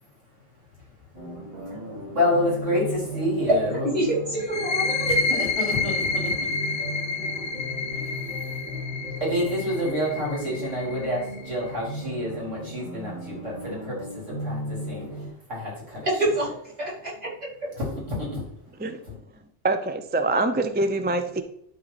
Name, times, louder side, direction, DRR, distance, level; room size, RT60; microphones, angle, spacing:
sound 1, 1.1-15.3, equal, 55° right, 3.5 m, -36 dB
voice 1, 2.1-3.9 5.0-6.3 9.2-16.1 17.8-18.5 19.1-19.2, left 1 dB, 75° right, -5 dB, 4.5 m, -28 dB
voice 2, 3.8-5.1 16.0-16.5 16.8-17.5, right 1 dB, 35° right, -6 dB, 4.3 m, -26 dB
sound 2, 4.4-11.8, left 4 dB, 60° left, 0.7 m, -29 dB
voice 3, 19.6-21.4, right 2 dB, 15° right, 8 dB, 0.3 m, -24 dB
12.0 x 4.5 x 4.1 m, 0.68 s
omnidirectional pair, 1.3 m